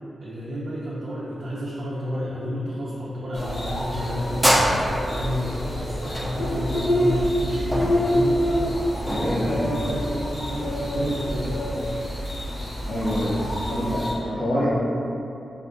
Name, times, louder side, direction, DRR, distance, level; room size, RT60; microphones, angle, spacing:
voice 1, 0.2-4.6 5.1-8.4 8.9-11.6 13.3-13.7 14.2-14.6, equal, 70° right, -8 dB, 0.5 m, -31 dB
sound 1, 3.3-14.1, equal, 50° left, 0.6 m, -27 dB
sound 2, 4.4-9.3, equal, 10° right, 0.3 m, -25 dB
voice 2, 9.2-9.7 12.9-13.4 13.7-15.0, equal, 85° left, -11 dB, 1.1 m, -25 dB
3.4 x 2.3 x 2.4 m, 2.8 s
cardioid pair, 80°, 0 cm